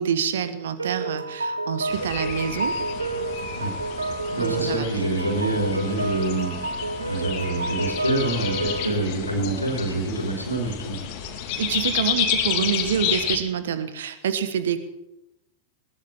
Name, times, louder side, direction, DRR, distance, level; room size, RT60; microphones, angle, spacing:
voice 1, 0.0-2.8 4.4-4.9 5.2-5.5 8.8-9.0 11.6-14.8, right 8 dB, 60° right, 12 dB, 1.4 m, -27 dB
sound 1, 0.8-8.9, right 2 dB, 80° right, 0.8 m, -30 dB
sound 2, 1.9-13.4, left 9 dB, 45° left, 2.3 m, -30 dB
voice 2, 4.3-11.0, right 2 dB, 85° left, 1 dB, 4.1 m, -26 dB
20.0 x 18.5 x 3.8 m, 0.91 s
figure-of-eight pair, 90°, 0 cm